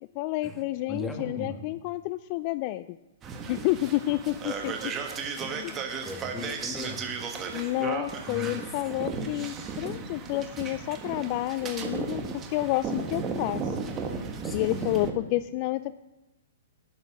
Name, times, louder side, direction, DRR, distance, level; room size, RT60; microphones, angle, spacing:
voice 1, 0.2-3.0 3.5-4.9 7.5-13.8 14.5-15.9, left 17 dB, 40° left, 15 dB, 0.3 m, -30 dB
voice 2, 0.9-1.6 3.5-4.1 5.4-7.2 8.3-8.8 14.4-14.8, left 2 dB, 10° left, 4 dB, 1.7 m, -39 dB
sound 1, 3.2-15.1, right 5 dB, 20° right, 1.6 m, -35 dB
12.0 x 9.5 x 6.0 m, 0.98 s
hypercardioid pair, 135°, 0 cm